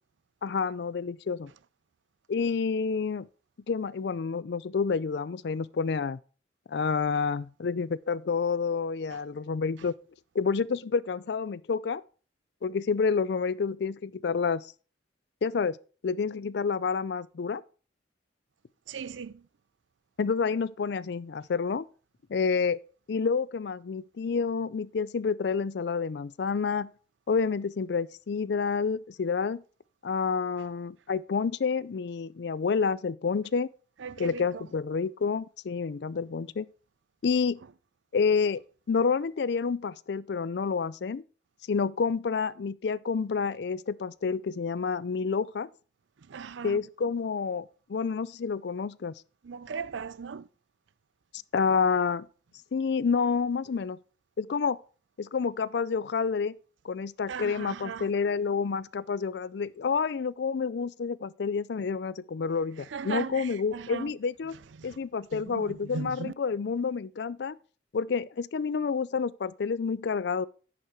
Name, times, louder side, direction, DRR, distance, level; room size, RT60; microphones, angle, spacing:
voice 1, 0.4-1.5 2.3-3.3 3.7-6.2 6.7-9.9 10.3-12.0 12.6-14.7 15.4-15.8 16.0-17.6 20.2-21.9 22.3-22.8 23.1-26.9 27.3-29.6 30.0-33.7 34.2-36.7 37.2-37.6 38.1-38.6 38.9-41.2 41.7-45.7 46.6-49.1 51.5-52.3 52.7-54.0 54.4-54.8 55.2-56.5 56.8-64.6 64.8-67.6 67.9-70.5, left 5 dB, 60° left, 0.4 m, -29 dB
voice 2, 18.9-19.4 34.0-34.7 46.3-46.8 49.4-50.5 57.3-58.1 62.9-64.1 64.8-65.0 65.3-66.3, right 5 dB, 80° right, 0.5 m, -38 dB
10.5 x 6.6 x 4.6 m
head